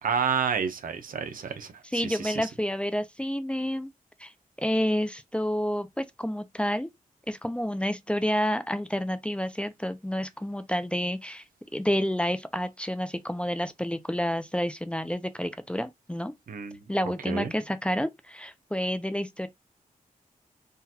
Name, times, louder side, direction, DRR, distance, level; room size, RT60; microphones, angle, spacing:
voice 1, 0.0-2.5 16.5-16.8 17.3-17.5, right 6 dB, 70° right, 0.7 m, -30 dB
voice 2, 1.9-3.9 4.2-4.3 4.6-6.9 7.3-11.4 11.7-16.3 16.9-19.5, equal, 5° left, 0.5 m, -29 dB
3.8 x 2.5 x 2.8 m
cardioid pair, 75°, 14 cm